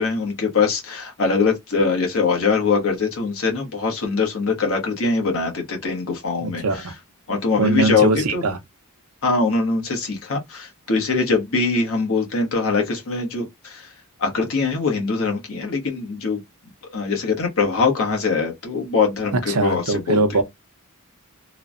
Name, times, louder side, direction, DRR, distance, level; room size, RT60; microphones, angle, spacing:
voice 1, 0.0-6.6 7.3-8.4 9.2-13.9 14.2-16.4 16.9-20.2, left 4 dB, 65° left, 1.0 m, -22 dB
voice 2, 6.4-6.9 7.6-8.6 19.3-20.4, right 3 dB, 80° right, 0.7 m, -21 dB
3.1 x 2.1 x 2.4 m
head